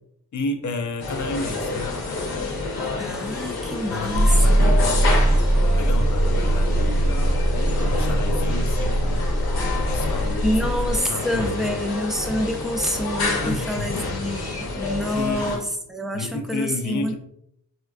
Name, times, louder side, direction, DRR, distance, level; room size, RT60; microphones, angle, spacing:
voice 1, 0.3-2.0 3.9-5.4 5.8-7.4 7.8-9.3 9.7-10.5 11.1-11.7 13.4-13.9 15.2-15.6 16.1-17.2, left 3 dB, 50° left, 6 dB, 0.5 m, -31 dB
sound 1, 1.0-15.6, left 3 dB, 80° left, 0.9 m, -28 dB
voice 2, 3.0-4.7 10.4-17.2, equal, ahead, 3 dB, 0.4 m, -27 dB
sound 2, 4.1-11.0, right 1 dB, 50° right, 0.6 m, -21 dB
4.3 x 2.4 x 2.3 m, 0.73 s
wide cardioid pair, 130°, 38 cm